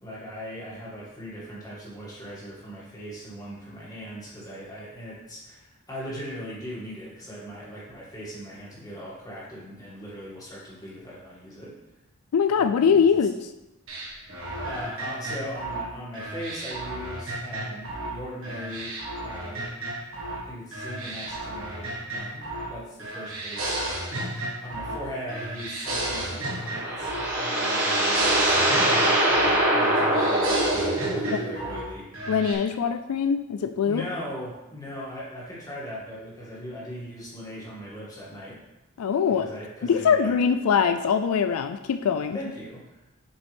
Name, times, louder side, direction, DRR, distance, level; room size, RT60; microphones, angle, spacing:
voice 1, 0.0-11.8 12.6-13.0 14.2-14.3 14.6-19.7 20.3-24.2 24.6-26.4 26.9-32.1 33.9-38.6 39.4-40.4 42.3-43.0, equal, 15° left, -7 dB, 2.2 m, -39 dB
voice 2, 12.3-13.5 32.3-34.0 39.0-39.5 39.8-42.4, left 6 dB, 85° left, 9 dB, 0.4 m, -22 dB
sound 1, 13.9-18.1 18.4-20.4 20.7-22.7 23.0-25.0 25.3-27.3 27.6-29.6 29.9-31.8 32.1-32.5, right 1 dB, 65° right, 1.6 m, -33 dB
sound 2, 26.4-31.6, right 1 dB, 50° right, 1.4 m, -23 dB
7.4 x 5.4 x 3.5 m, 0.98 s
head